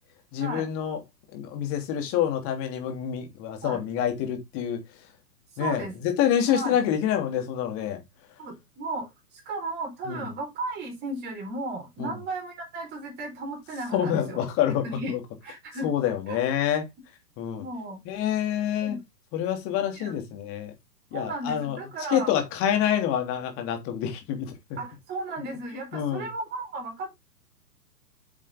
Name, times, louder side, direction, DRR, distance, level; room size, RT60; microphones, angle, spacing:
voice 1, 0.3-1.0 1.3-5.1 5.6-8.0 10.1-10.3 12.0-12.1 13.9-15.2 15.8-16.9 17.4-17.7 18.0-19.0 19.3-20.7 21.1-21.8 22.1-24.5 25.9-26.3, left 10 dB, 25° left, 3.1 m, -27 dB
voice 2, 5.5-6.0 6.5-6.8 8.4-14.4 14.8-15.2 15.4-15.9 16.3-16.4 17.6-18.0 18.8-19.0 19.9-20.2 21.1-22.3 24.8-27.2, right 2 dB, 20° right, 4.2 m, -35 dB
8.9 x 7.2 x 3.5 m
figure-of-eight pair, 120°, 48 cm